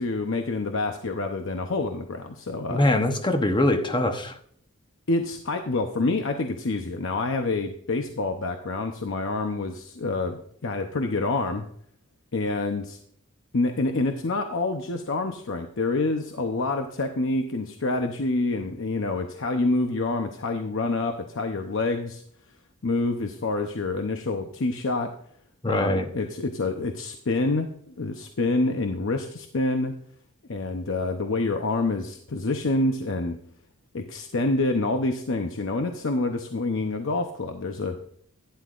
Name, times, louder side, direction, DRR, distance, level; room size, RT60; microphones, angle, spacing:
voice 1, 0.0-2.8 5.1-11.7 12.3-13.0 13.5-22.2 22.8-25.1 25.6-30.0 30.5-33.4 33.9-38.0, left 2 dB, 60° left, 5 dB, 0.7 m, -27 dB
voice 2, 2.7-4.3 25.6-26.1, left 1 dB, 20° left, 7 dB, 0.9 m, -23 dB
11.5 x 10.5 x 2.5 m, 0.63 s
head